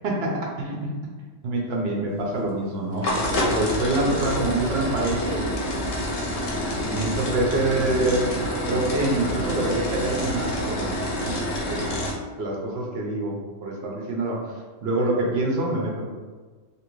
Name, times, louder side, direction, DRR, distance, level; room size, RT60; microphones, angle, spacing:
voice 1, 0.0-1.0 1.4-5.6 6.8-12.0 12.4-16.1, right 2 dB, 60° right, -1 dB, 0.8 m, -26 dB
sound 1, 2.2-12.1, left 1 dB, 80° left, 1.1 m, -27 dB
2.8 x 2.5 x 3.0 m, 1.4 s
omnidirectional pair, 1.3 m